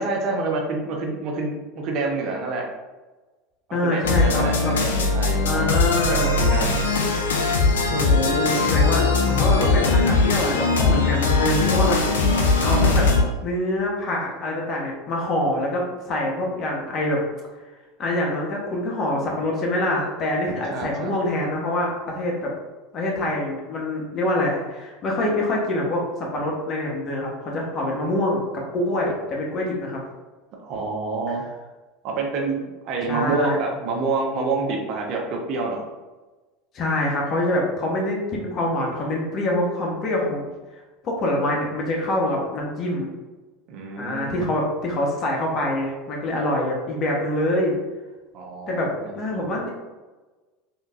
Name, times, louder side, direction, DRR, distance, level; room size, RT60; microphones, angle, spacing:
voice 1, 0.0-2.6 3.7-5.8 6.1-6.8 20.7-21.1 30.6-31.4 32.0-35.9 43.7-44.4 48.3-49.6, right 3 dB, 55° right, 0 dB, 0.7 m, -27 dB
voice 2, 3.7-4.7 5.5-6.4 7.9-12.0 12.3-13.1 13.4-17.2 18.0-22.5 22.9-30.0 33.1-33.6 36.7-40.5 41.0-43.1 44.0-47.7 48.7-49.7, left 1 dB, 45° left, -1 dB, 1.0 m, -25 dB
sound 1, 4.0-13.2, left 3 dB, 90° left, 0.4 m, -20 dB
3.5 x 2.8 x 2.5 m, 1.2 s
hypercardioid pair, 85°, 0 cm